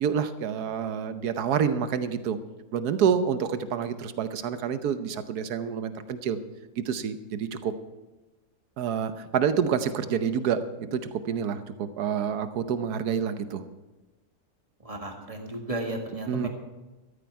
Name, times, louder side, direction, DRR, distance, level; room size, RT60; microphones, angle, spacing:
voice 1, 0.0-2.4 2.7-6.4 6.8-7.7 8.8-10.7 10.9-13.6 16.3-16.5, right 7 dB, 80° right, 11 dB, 1.4 m, -28 dB
voice 2, 14.8-16.5, right 1 dB, 20° right, 2 dB, 1.9 m, -34 dB
13.5 x 13.0 x 4.7 m, 1.1 s
omnidirectional pair, 1.7 m